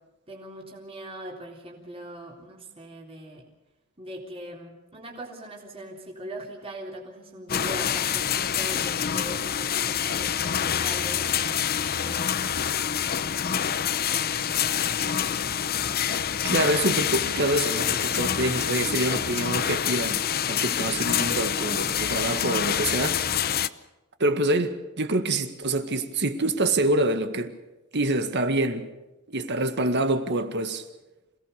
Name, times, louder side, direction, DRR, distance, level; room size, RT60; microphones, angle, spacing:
voice 1, 0.3-3.4 4.0-12.5 13.2-15.2, right 1 dB, 25° right, 3.7 m, -41 dB
sound 1, 7.5-23.7, left 9 dB, 45° left, 0.7 m, -26 dB
voice 2, 16.4-23.2 24.2-27.6 27.9-28.9 29.3-30.8, right 2 dB, 55° right, 1.9 m, -26 dB
27.0 x 18.0 x 6.8 m
head